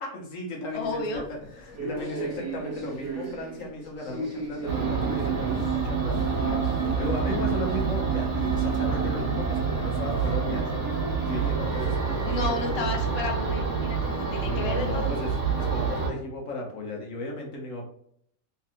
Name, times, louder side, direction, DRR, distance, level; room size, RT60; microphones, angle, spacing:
voice 1, 0.0-6.3 6.9-10.7 11.2-12.8 14.5-15.3 15.6-17.9, left 1 dB, 70° left, 0 dB, 1.4 m, -35 dB
voice 2, 0.7-1.2 12.2-15.1, left 2 dB, 30° left, 1 dB, 0.5 m, -32 dB
sound 1, 0.7-12.5, right 3 dB, 15° right, 0.9 m, -38 dB
sound 2, 4.7-16.1, right 5 dB, 60° right, 1.5 m, -27 dB
3.4 x 3.2 x 2.9 m, 0.67 s
omnidirectional pair, 1.5 m